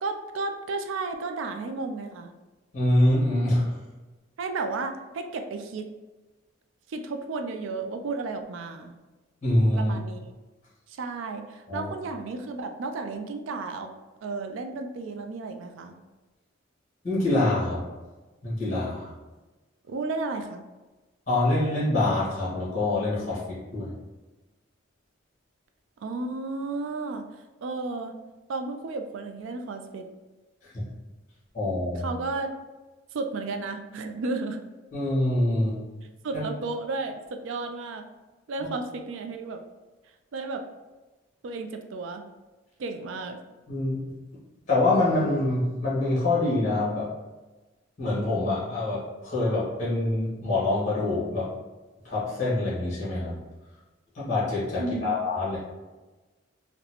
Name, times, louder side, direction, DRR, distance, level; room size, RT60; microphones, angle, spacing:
voice 1, 0.0-2.3 4.4-5.9 6.9-8.9 9.7-10.3 10.9-13.9 14.2-16.0 19.9-20.6 26.0-27.2 27.6-28.1 28.5-30.1 32.0-32.5 33.1-34.6 36.2-38.0 38.5-39.6 40.3-40.6 41.4-42.2 42.8-43.4 54.8-55.1, right 3 dB, 70° right, 6 dB, 0.3 m, -33 dB
voice 2, 2.7-3.7 9.4-9.9 11.7-11.9 17.0-17.8 18.4-19.1 21.3-23.9 30.6-30.8 31.5-32.1 34.9-35.8 36.3-36.4 43.7-44.0 44.7-47.1 48.0-51.5 52.0-53.3 54.1-55.6, left 2 dB, 35° left, -8 dB, 1.3 m, -25 dB
3.9 x 2.1 x 2.8 m, 1.2 s
head